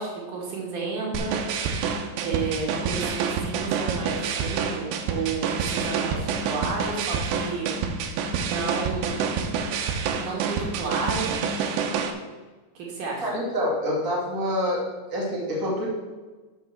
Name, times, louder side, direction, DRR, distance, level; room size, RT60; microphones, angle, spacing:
voice 1, 0.0-1.3 2.2-7.7 8.5-9.3 10.2-11.3 12.7-13.3, right 4 dB, 55° right, -3 dB, 2.5 m, -31 dB
sound 1, 1.1-12.1, right 6 dB, 80° right, 2.6 m, -28 dB
voice 2, 13.2-15.8, equal, 15° right, -6 dB, 0.6 m, -27 dB
7.3 x 6.1 x 6.9 m, 1.3 s
omnidirectional pair, 5.9 m